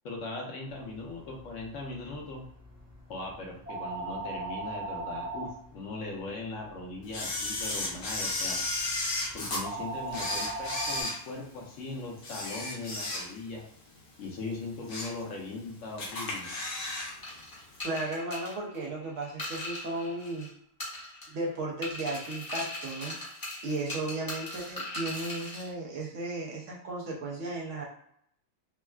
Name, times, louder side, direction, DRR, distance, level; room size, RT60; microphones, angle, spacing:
voice 1, 0.0-2.4 3.1-8.6 9.3-13.6 14.2-16.5, left 2 dB, 80° left, 0 dB, 1.1 m, -39 dB
sound 1, 0.7-11.0, right 2 dB, 35° right, 1.0 m, -41 dB
Camera, 7.1-9.6 10.1-11.7 12.2-13.6 13.9-14.1 14.6-15.2 15.6-15.7 16.0-17.1 17.4-17.5, left 2 dB, 55° left, 0.8 m, -34 dB
sound 2, 17.2-20.5 20.8-21.5 21.8-25.7, left 2 dB, 20° left, 0.6 m, -39 dB
voice 2, 17.8-20.5 21.3-23.2 23.6-27.8, right 2 dB, 75° right, -3 dB, 1.1 m, -35 dB
3.5 x 2.1 x 2.3 m, 0.72 s
omnidirectional pair, 1.3 m